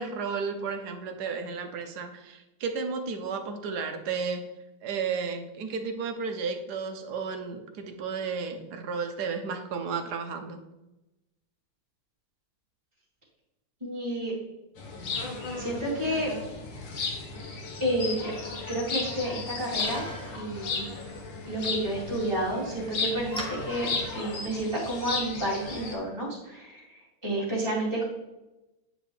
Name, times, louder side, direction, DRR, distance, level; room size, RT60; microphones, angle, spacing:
voice 1, 0.0-4.5 4.8-10.6, right 5 dB, 65° right, 5 dB, 1.1 m, -33 dB
voice 2, 13.8-14.3 15.6-16.3 17.8-20.0 20.3-20.9 21.5-28.0, right 1 dB, 15° right, -8 dB, 2.7 m, -30 dB
sound 1, 14.8-25.9, left 4 dB, 65° left, 1.7 m, -35 dB
Bicycle, 19.1-24.8, equal, 5° left, 0.8 m, -44 dB
8.8 x 5.2 x 3.2 m, 1.0 s
omnidirectional pair, 2.2 m